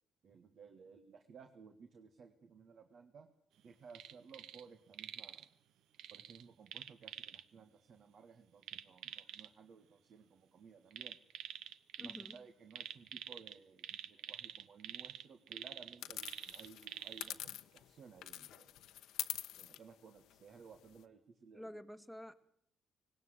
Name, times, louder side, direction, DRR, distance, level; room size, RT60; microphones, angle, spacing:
voice 1, 0.2-3.3 3.6-5.5 6.1-11.2 12.0-18.8 19.6-21.8, right 5 dB, 55° right, 7 dB, 1.8 m, -58 dB
sound 1, 3.9-4.6 4.9-5.4 6.0-7.4 8.6-9.5 10.9-12.4 12.7-17.3 17.8-17.9, right 10 dB, 85° right, 0.9 m, -47 dB
voice 2, 12.0-12.4 21.5-22.3, equal, 5° right, 11 dB, 1.7 m, -49 dB
sound 2, 16.0-17.9 18.2-21.0, left 13 dB, 85° left, 1.0 m, -45 dB
19.0 x 18.0 x 8.1 m, 0.65 s
cardioid pair, 90°, 0 cm